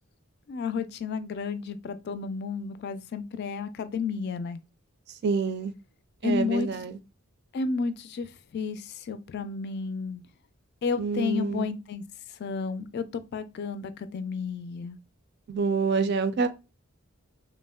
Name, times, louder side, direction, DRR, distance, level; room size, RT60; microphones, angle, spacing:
voice 1, 0.5-4.6 6.2-6.7 7.5-8.3 8.5-10.2 10.8-12.0 12.4-15.0, left 5 dB, 50° left, 0.3 m, -32 dB
voice 2, 5.2-5.7 6.2-7.0 11.0-11.7 15.5-16.5, right 4 dB, 50° right, 0.4 m, -27 dB
3.4 x 2.0 x 2.2 m
head